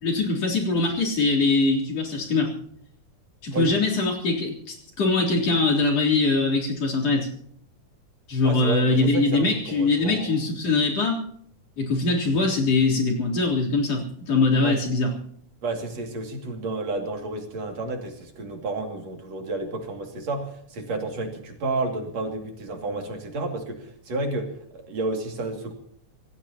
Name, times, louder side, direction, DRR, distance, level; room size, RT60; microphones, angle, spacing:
voice 1, 0.0-2.5 3.4-7.3 8.3-11.2 11.8-15.1, left 3 dB, 55° left, -1 dB, 4.6 m, -22 dB
voice 2, 8.4-10.3 14.6-14.8 15.6-25.7, right 2 dB, 60° right, 3 dB, 3.7 m, -31 dB
26.5 x 18.0 x 2.9 m, 0.65 s
omnidirectional pair, 3.5 m